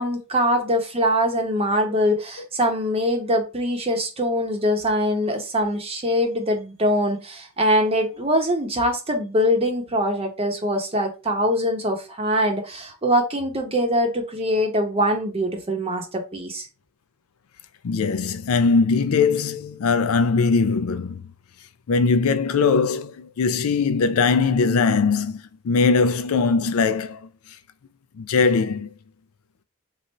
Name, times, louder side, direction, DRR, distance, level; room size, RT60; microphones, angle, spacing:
voice 1, 0.0-16.7, equal, 30° right, 0.8 m, -23 dB
voice 2, 17.8-21.2 21.9-27.3 28.2-28.9, left 4 dB, 75° left, 0.4 m, -21 dB
3.2 x 2.6 x 4.1 m
head